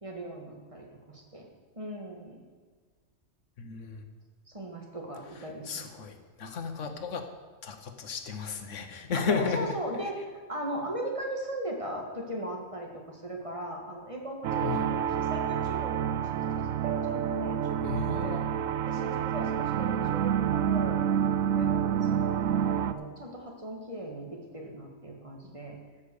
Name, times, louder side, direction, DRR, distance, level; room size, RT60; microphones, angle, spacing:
voice 1, 0.0-1.5 1.8-2.5 4.5-5.9 9.1-18.4 18.9-21.0 21.5-25.8, right 1 dB, 25° right, 0 dB, 1.7 m, -38 dB
voice 2, 3.6-4.0 5.7-7.2 7.6-9.8 14.6-14.8 17.8-18.4, left 5 dB, 75° left, 6 dB, 1.3 m, -33 dB
sound 1, 14.4-22.9, right 9 dB, 85° right, 1.0 m, -28 dB
13.5 x 5.7 x 6.9 m, 1.5 s
omnidirectional pair, 1.3 m